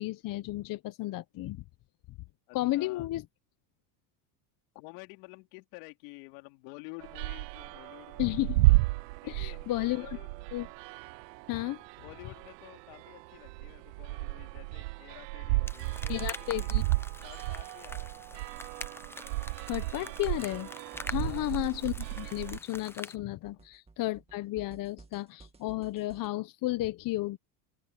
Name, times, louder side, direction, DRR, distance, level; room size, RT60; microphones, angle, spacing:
voice 1, 0.0-1.6 2.5-3.2 8.2-8.6 9.3-10.1 10.5-10.7 11.5-11.8 16.1-16.8 19.7-20.7 21.1-27.4, left 17 dB, 45° left, 0.9 m, -33 dB
voice 2, 2.5-3.1 4.7-8.4 9.2-10.5 12.0-16.9 17.2-18.5 21.2-21.6, left 27 dB, 75° left, 3.7 m, -50 dB
sound 1, 7.0-22.6, right 22 dB, 85° right, 0.7 m, -33 dB
sound 2, 15.7-23.2, left 2 dB, 5° left, 0.5 m, -45 dB
sound 3, 20.5-26.3, right 3 dB, 10° right, 2.0 m, -56 dB
open air
supercardioid pair, 115°, 48 cm